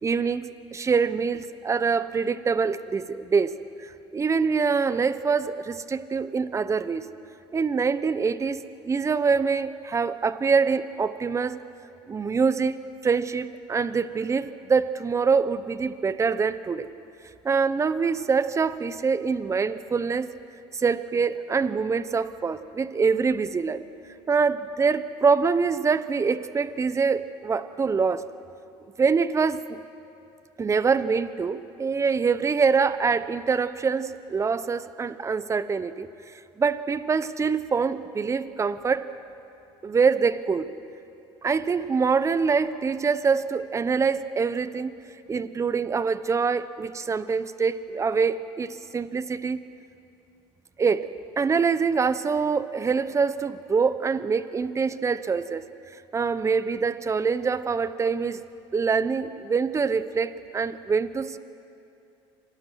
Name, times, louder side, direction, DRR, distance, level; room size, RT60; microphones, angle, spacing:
voice 1, 0.0-3.5 3.8-7.1 7.5-11.6 12.1-12.8 13.0-16.9 17.4-20.3 20.7-23.8 24.3-28.2 29.0-29.8 30.6-36.1 36.6-39.1 39.8-40.7 41.4-44.9 45.3-49.6 50.8-51.1 51.4-55.6 56.1-58.4 58.7-61.4, right 5 dB, 25° right, 14 dB, 0.9 m, -25 dB
26.5 x 18.0 x 6.3 m, 2.7 s
supercardioid pair, 95°, 12 cm